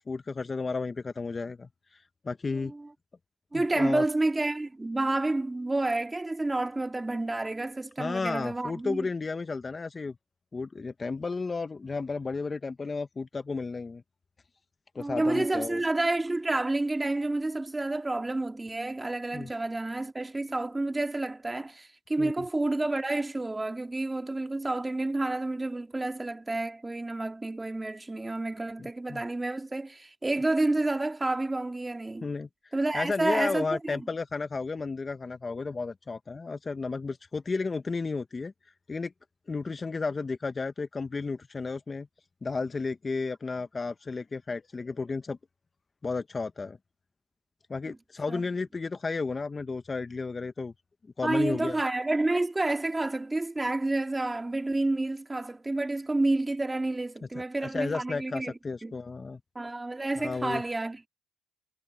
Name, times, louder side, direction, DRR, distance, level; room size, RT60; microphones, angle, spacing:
voice 1, 0.1-2.7 3.5-4.0 8.0-10.2 10.5-14.0 14.9-15.8 19.3-19.5 22.2-22.4 28.8-29.2 32.2-38.5 38.9-39.1 39.5-42.1 42.4-45.4 46.0-46.8 47.7-50.7 51.2-51.8 57.6-59.4 60.2-60.6, left 4 dB, 30° left, 1.1 m, -33 dB
voice 2, 2.5-2.9 3.5-9.1 15.0-32.3 32.7-34.1 48.3-48.4 51.2-58.9 59.5-61.1, right 2 dB, 15° right, 2.4 m, -29 dB
supercardioid pair, 70°, 0 cm